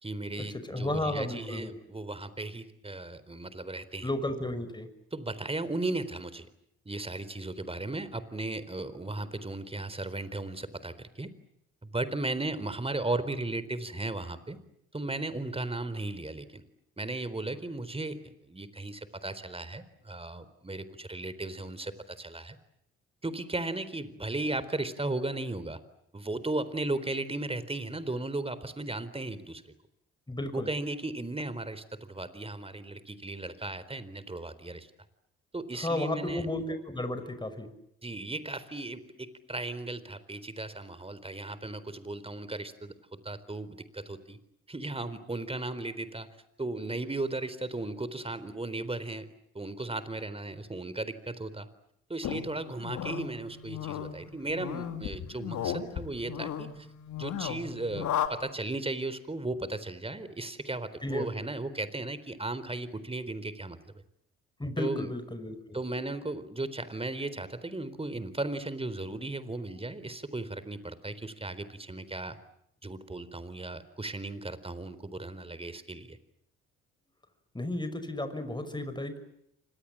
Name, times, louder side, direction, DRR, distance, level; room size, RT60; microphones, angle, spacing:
voice 1, 0.0-4.1 5.1-6.5 6.9-11.3 11.8-14.6 14.9-16.6 17.0-22.6 23.2-25.8 26.1-29.7 30.5-34.9 35.5-36.5 38.0-44.4 44.7-46.3 46.6-49.3 49.5-51.7 52.1-56.9 57.2-63.9 64.8-65.1 65.7-72.4 72.8-76.2, right 2 dB, 20° right, 15 dB, 4.0 m, -36 dB
voice 2, 0.7-1.7 4.0-4.9 30.3-30.7 35.8-37.7 61.0-61.3 64.6-65.8 77.5-79.2, left 1 dB, 15° left, 10 dB, 6.0 m, -33 dB
sound 1, 52.2-58.3, left 9 dB, 65° left, 2.8 m, -35 dB
30.0 x 26.0 x 7.6 m, 0.76 s
hypercardioid pair, 50°, 31 cm